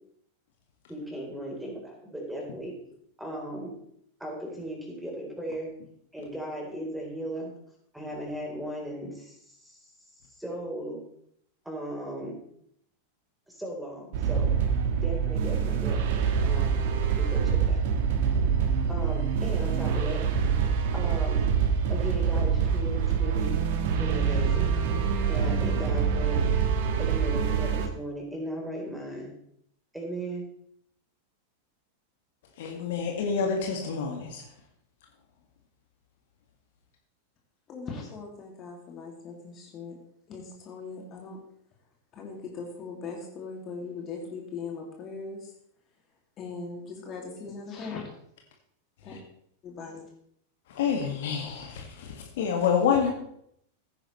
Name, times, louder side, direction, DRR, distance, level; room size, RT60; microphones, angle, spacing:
voice 1, 0.9-2.7 3.2-3.7 4.2-5.7 6.1-7.5 7.9-9.8 10.4-11.0 11.6-12.4 13.5-14.5 15.0-17.9 18.9-20.2 20.9-21.5 21.9-23.6 23.9-24.7 25.3-26.4 27.0-29.3 29.9-30.4, right 1 dB, 5° right, -1 dB, 3.9 m, -37 dB
sound 1, 14.1-27.9, right 6 dB, 50° right, 1.4 m, -25 dB
voice 2, 32.6-34.4 50.7-53.1, left 6 dB, 55° left, 2 dB, 1.8 m, -27 dB
voice 3, 37.7-40.0 40.3-41.4 42.1-45.5 46.4-48.1 49.0-49.2 49.6-50.1, left 4 dB, 30° left, 0 dB, 2.4 m, -39 dB
15.5 x 9.8 x 3.2 m, 0.70 s
figure-of-eight pair, 90°, 0 cm